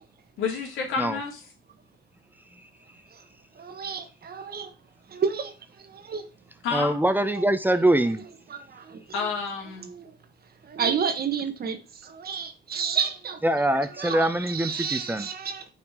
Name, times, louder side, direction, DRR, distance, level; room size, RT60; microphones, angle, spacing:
voice 1, 0.4-1.4 6.6-7.0 9.1-9.9, left 5 dB, 85° left, 2.6 m, -29 dB
voice 2, 3.6-4.7 5.1-6.3 7.3-7.4 8.5-9.0 9.8-10.1 10.6-13.4 13.7-15.6, right 6 dB, 50° right, 1.2 m, -31 dB
voice 3, 6.7-8.2 13.4-15.3, right 1 dB, 10° right, 0.7 m, -23 dB
6.0 x 4.3 x 4.8 m
cardioid pair, 90°, 20 cm